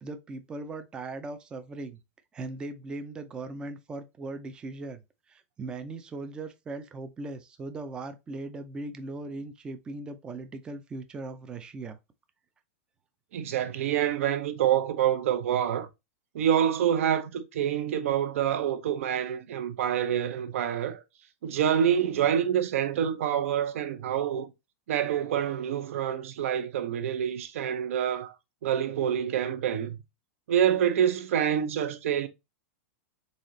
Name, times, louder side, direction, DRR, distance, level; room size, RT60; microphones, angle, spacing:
voice 1, 0.0-2.0 2.3-5.0 5.3-12.0, right 2 dB, 10° right, 0.4 m, -39 dB
voice 2, 13.3-15.9 16.3-21.0 21.4-24.5 24.9-28.3 28.6-30.0 30.5-32.3, right 9 dB, 65° right, 0.8 m, -27 dB
4.1 x 3.8 x 3.1 m
supercardioid pair, 165°, 8 cm